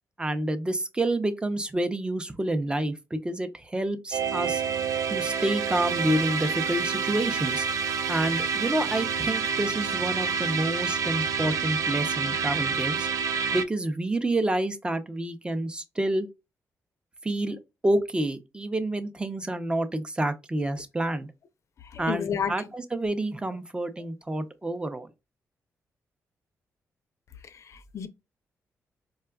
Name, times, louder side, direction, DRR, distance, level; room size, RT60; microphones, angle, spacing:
voice 1, 0.2-4.6 5.1-7.6 8.1-13.1 13.5-16.3 17.2-21.3 22.0-25.1, right 1 dB, 15° right, 0.6 m, -28 dB
sound 1, 4.1-13.6, right 6 dB, 75° right, 0.4 m, -28 dB
voice 2, 21.9-22.5 27.4-28.1, left 7 dB, 55° left, 0.5 m, -31 dB
4.5 x 2.3 x 2.3 m
cardioid pair, 85°, 6 cm